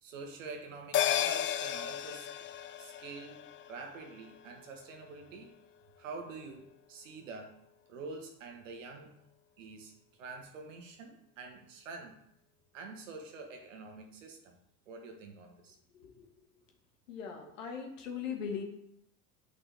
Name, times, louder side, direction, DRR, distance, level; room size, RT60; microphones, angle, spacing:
voice 1, 0.0-2.3 2.8-3.4 3.7-5.5 6.0-7.6 7.9-9.2 9.6-12.2 12.7-14.6 14.9-15.8, right 3 dB, 90° right, 3 dB, 1.5 m, -46 dB
sound 1, 0.9-5.7 6.0-6.1, left 11 dB, 30° left, 0.4 m, -35 dB
voice 2, 17.1-18.6, left 6 dB, 85° left, 2 dB, 1.7 m, -39 dB
8.9 x 5.4 x 3.5 m, 0.77 s
hypercardioid pair, 80°, 37 cm